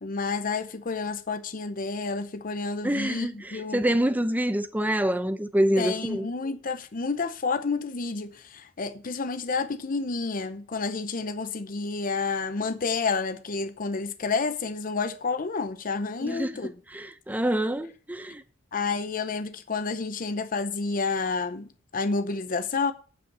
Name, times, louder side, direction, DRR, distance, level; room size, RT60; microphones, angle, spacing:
voice 1, 0.0-3.8 5.8-16.7 18.7-22.9, left 4 dB, 45° left, 0.7 m, -30 dB
voice 2, 2.8-6.3 16.2-16.5 16.9-18.4, right 1 dB, 10° right, 0.7 m, -26 dB
8.9 x 5.3 x 6.8 m
head